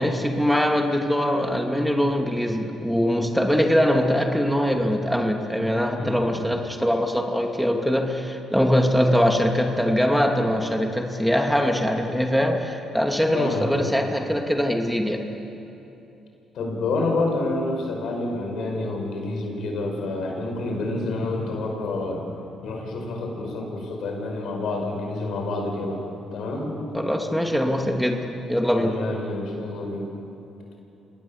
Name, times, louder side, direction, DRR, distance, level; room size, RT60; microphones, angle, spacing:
voice 1, 0.0-15.2 26.9-28.9, equal, ahead, 2 dB, 2.7 m, -22 dB
voice 2, 6.0-6.5 13.3-13.9 16.5-22.2 22.6-26.0 26.3-26.7 28.8-30.1, left 2 dB, 65° left, 2 dB, 5.5 m, -28 dB
26.5 x 20.0 x 7.3 m, 3.0 s
supercardioid pair, 60°, 0 cm